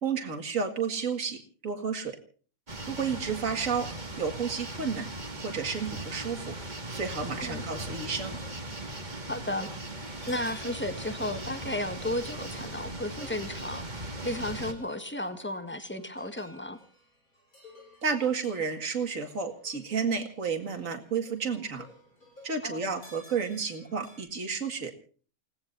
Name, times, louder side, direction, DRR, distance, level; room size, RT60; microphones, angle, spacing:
voice 1, 0.0-1.4 1.6-2.2 2.9-3.9 4.2-5.1 5.4-6.5 6.9-8.4 18.0-21.9 22.4-24.9, right 5 dB, 65° right, 4 dB, 2.5 m, -31 dB
sound 1, 2.7-14.7, right 1 dB, 30° right, 2.2 m, -39 dB
sound 2, 6.5-24.2, left 1 dB, 75° left, 8.6 m, -55 dB
voice 2, 9.3-9.7 10.3-13.8 14.2-16.8 22.6-22.8, left 1 dB, 10° left, 8 dB, 1.7 m, -34 dB
29.5 x 17.5 x 2.7 m, 0.40 s
omnidirectional pair, 1.5 m